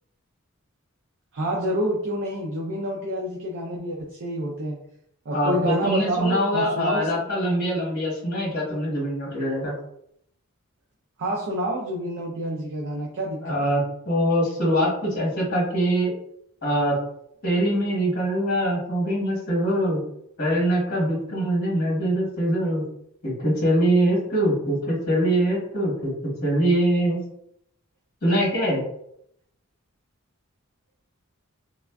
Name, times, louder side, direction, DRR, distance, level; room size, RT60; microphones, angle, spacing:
voice 1, 1.3-4.8 5.3-7.2 11.2-13.7, right 1 dB, 60° right, -2 dB, 0.5 m, -28 dB
voice 2, 5.3-9.7 13.4-16.1 16.6-16.9 17.4-20.0 20.4-22.8 23.2-27.2 28.2-28.8, right 1 dB, 45° left, -5 dB, 1.1 m, -23 dB
3.5 x 2.4 x 2.2 m, 0.72 s
head